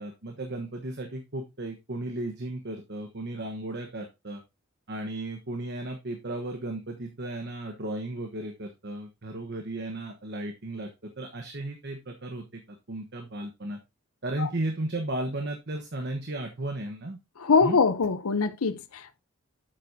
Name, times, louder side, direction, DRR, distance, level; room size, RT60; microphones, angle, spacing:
voice 1, 0.0-4.4 4.9-13.8 14.2-17.2 17.6-17.8, right 1 dB, 50° right, 1.1 m, -35 dB
voice 2, 17.4-19.2, left 4 dB, 90° left, 0.7 m, -23 dB
8.4 x 7.6 x 2.7 m
head